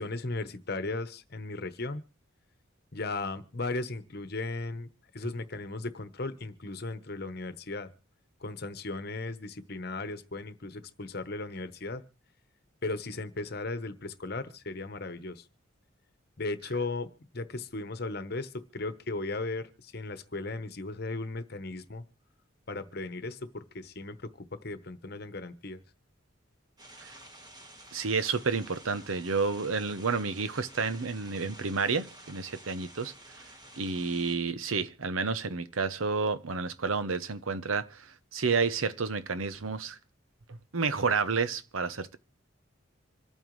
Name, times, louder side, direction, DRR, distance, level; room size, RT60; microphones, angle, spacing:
voice 1, 0.0-2.0 2.9-4.9 5.1-7.9 8.4-12.0 12.8-15.4 16.4-17.1 17.3-22.0 22.7-25.8, left 3 dB, 50° left, 1.0 m, -36 dB
sound 1, 26.8-34.4, right 1 dB, 20° right, 1.5 m, -51 dB
voice 2, 27.9-33.1 33.8-40.0 40.5-42.2, right 4 dB, 85° right, 0.8 m, -30 dB
26.0 x 9.0 x 3.2 m
head